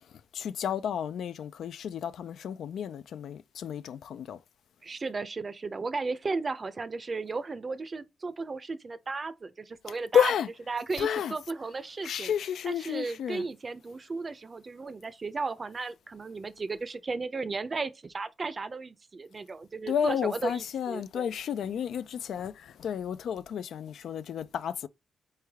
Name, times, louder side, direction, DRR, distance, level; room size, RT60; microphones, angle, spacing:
voice 1, 0.3-4.4 9.9-10.5 11.0-11.3 12.0-13.5 19.9-24.9, left 8 dB, 75° left, 0.3 m, -31 dB
voice 2, 4.8-10.3 10.7-12.3 12.6-21.3, right 4 dB, 30° right, 0.5 m, -35 dB
4.5 x 3.3 x 3.4 m
cardioid pair, 125°, 0 cm